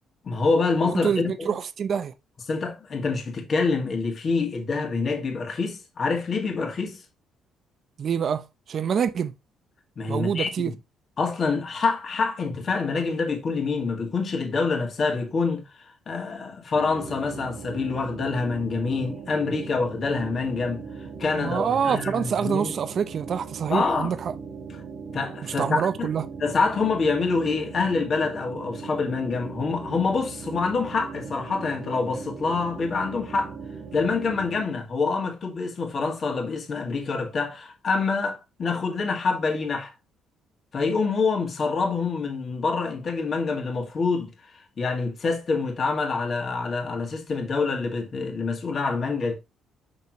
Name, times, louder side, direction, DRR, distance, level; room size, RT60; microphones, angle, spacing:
voice 1, 0.2-1.5 2.5-7.0 10.0-10.5 11.2-22.7 23.7-24.1 25.1-26.1 26.4-33.6 33.9-39.9 40.7-49.3, left 4 dB, 35° left, 1.9 m, -26 dB
voice 2, 1.0-2.1 8.0-9.3 10.1-10.7 21.3-24.3 25.6-26.2, right 7 dB, 45° right, 0.6 m, -26 dB
sound 1, 16.7-34.7, right 5 dB, 70° right, 1.3 m, -39 dB
6.2 x 5.8 x 2.9 m
cardioid pair, 145°, 0 cm